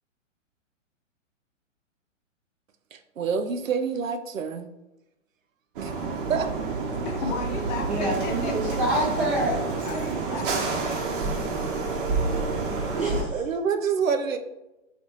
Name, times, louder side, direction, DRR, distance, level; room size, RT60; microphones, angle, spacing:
voice 1, 2.9-4.7 5.8-5.9 6.3-6.5 10.3-10.5 13.3-14.4, right 6 dB, 80° right, 8 dB, 0.6 m, -27 dB
sound 1, 5.8-13.2, right 4 dB, 40° right, 1.0 m, -28 dB
voice 2, 7.0-8.8 9.8-11.1, left 4 dB, 35° left, 2 dB, 0.8 m, -35 dB
voice 3, 7.9-9.6 12.9-13.4, right 1 dB, 20° right, -6 dB, 0.7 m, -26 dB
4.0 x 3.3 x 3.0 m, 0.95 s
figure-of-eight pair, 120°, 39 cm